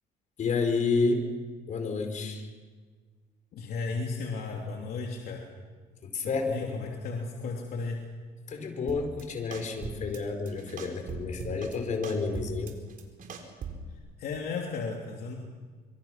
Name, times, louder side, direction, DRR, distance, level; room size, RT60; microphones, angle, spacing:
voice 1, 0.4-1.2 1.7-2.4 6.0-6.9 8.5-12.7, left 4 dB, 45° left, 5 dB, 4.7 m, -30 dB
voice 2, 3.5-5.4 6.5-8.0 14.2-15.4, left 4 dB, 65° left, 0 dB, 3.2 m, -34 dB
sound 1, 8.9-9.2 9.5-10.2 10.5-11.8 12.0-13.9, right 6 dB, 55° right, 4.3 m, -40 dB
26.0 x 25.0 x 6.0 m, 1.5 s
cardioid pair, 110°, 17 cm